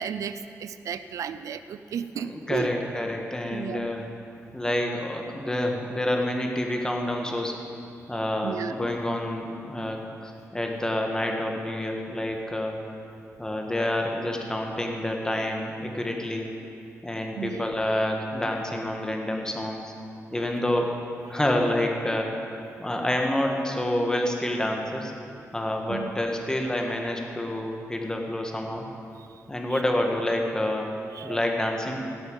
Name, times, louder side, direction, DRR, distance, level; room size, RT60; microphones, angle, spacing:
voice 1, 0.0-2.7 3.5-3.9 8.4-8.7 17.4-17.7 25.9-26.1 29.7-29.8 31.2-31.4, right 7 dB, 80° right, 12 dB, 0.5 m, -34 dB
voice 2, 2.2-4.1 4.5-7.6 8.1-12.9 13.4-16.5 17.0-19.9 20.3-20.9 21.3-22.5 22.8-25.1 25.5-28.9 29.5-30.9 31.2-32.0, left 1 dB, 10° left, 2 dB, 1.6 m, -28 dB
17.0 x 8.1 x 5.5 m, 2.5 s
cardioid pair, 100°, 5 cm